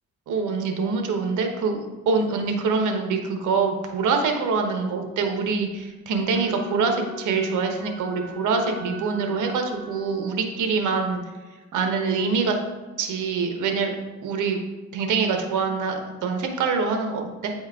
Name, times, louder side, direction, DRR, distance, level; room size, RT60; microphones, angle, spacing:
voice 1, 0.3-11.2 11.7-12.6 13.0-13.9 14.2-14.6 14.9-17.5, right 4 dB, 80° right, 4 dB, 1.1 m, -25 dB
Wind instrument woodwind instrument, 6.2-10.7, left 2 dB, 55° left, 1.7 m, -40 dB
8.9 x 4.3 x 3.6 m, 1.2 s
cardioid pair, 90°, 30 cm